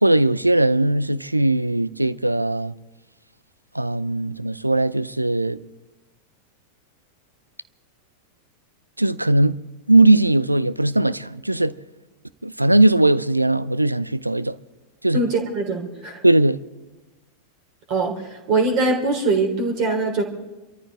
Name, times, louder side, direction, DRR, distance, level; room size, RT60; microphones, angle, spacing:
voice 1, 0.0-2.7 3.7-5.6 9.0-9.6 9.9-11.7 12.4-14.6 15.0-15.2 16.2-16.6, right 2 dB, 85° right, 0.5 m, -19 dB
voice 2, 15.1-16.2 17.9-20.2, right 3 dB, 40° right, 3.6 m, -22 dB
28.5 x 14.0 x 3.6 m
figure-of-eight pair, 90°, 0 cm